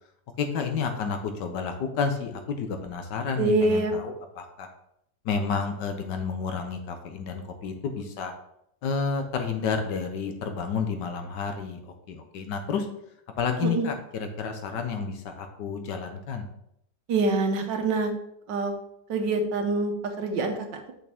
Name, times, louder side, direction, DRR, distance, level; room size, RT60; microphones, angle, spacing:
voice 1, 0.4-4.7 5.2-8.3 8.8-12.9 13.4-16.4, left 5 dB, 75° left, 6 dB, 1.6 m, -30 dB
voice 2, 3.4-3.9 13.6-13.9 17.1-18.1 18.5-18.7 19.1-20.9, right 3 dB, 80° right, 5 dB, 1.7 m, -25 dB
8.4 x 6.0 x 3.6 m, 0.77 s
omnidirectional pair, 1.9 m